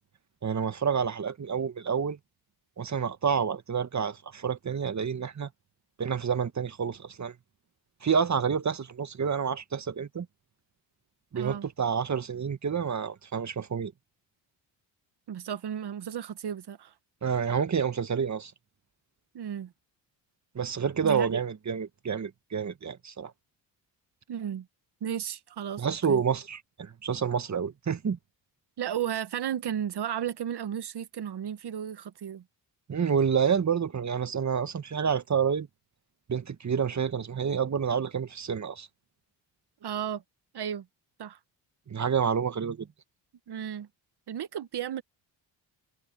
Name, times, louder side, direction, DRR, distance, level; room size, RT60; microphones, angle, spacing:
voice 1, 0.4-2.2 2.8-5.5 6.0-7.3 8.0-10.3 11.3-13.9 17.2-18.5 20.6-23.3 25.8-28.2 32.9-35.7 36.3-38.9 41.9-42.9, right 6 dB, 35° right, 1.7 m, -28 dB
voice 2, 11.3-11.7 15.3-16.9 19.3-19.7 21.0-21.4 24.3-24.7 25.0-26.2 28.8-32.4 39.8-40.2 40.5-40.9 41.2-41.4 43.5-43.9 44.3-45.0, right 9 dB, 55° right, 1.5 m, -34 dB
supercardioid pair, 70°, 47 cm